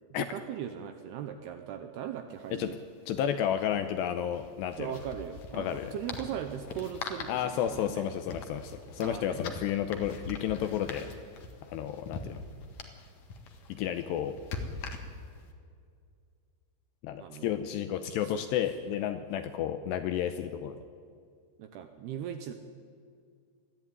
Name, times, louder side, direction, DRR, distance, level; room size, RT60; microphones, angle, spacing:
voice 1, 0.2-2.8 4.8-8.1 9.0-9.5 17.2-17.5 18.2-18.4 21.6-22.5, right 9 dB, 75° right, 7 dB, 2.4 m, -39 dB
sound 1, 2.3-2.4 2.6-2.8 4.2-15.4, left 4 dB, 60° left, 1.9 m, -43 dB
voice 2, 3.1-4.9 5.5-5.9 7.3-11.1 11.7-12.4 13.7-14.4 17.0-20.8, left 10 dB, 80° left, 9 dB, 2.6 m, -32 dB
21.5 x 14.0 x 9.5 m, 2.2 s
omnidirectional pair, 5.6 m